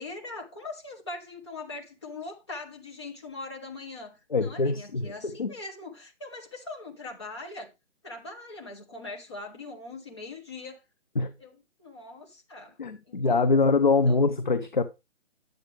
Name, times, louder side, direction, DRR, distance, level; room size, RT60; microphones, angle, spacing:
voice 1, 0.0-7.7 8.0-10.8 11.4-12.8 13.0-13.6 13.8-14.3, left 3 dB, 20° left, 1.4 m, -41 dB
voice 2, 4.3-5.5 11.2-11.3 12.8-14.8, left 3 dB, 40° left, 0.6 m, -24 dB
10.5 x 7.8 x 3.4 m
hypercardioid pair, 180°, 36 cm